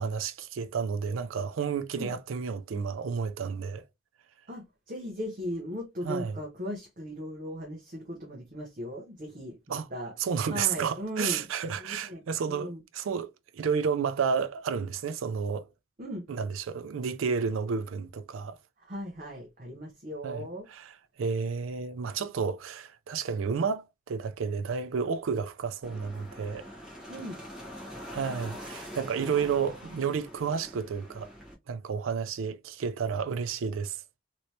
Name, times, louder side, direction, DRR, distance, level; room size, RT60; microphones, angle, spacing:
voice 1, 0.0-3.8 6.0-6.4 9.7-9.9 10.2-15.7 16.3-18.6 20.2-20.9 21.2-26.7 28.1-31.3 31.7-34.0, right 6 dB, 80° right, 0.4 m, -31 dB
voice 2, 4.5-10.1 10.5-11.5 11.8-12.2 12.5-12.8 16.0-16.3 18.8-20.7 27.1-27.4, equal, 40° right, 0.8 m, -37 dB
sound 1, 25.8-31.5, equal, 5° right, 1.2 m, -44 dB
3.1 x 3.0 x 2.7 m
head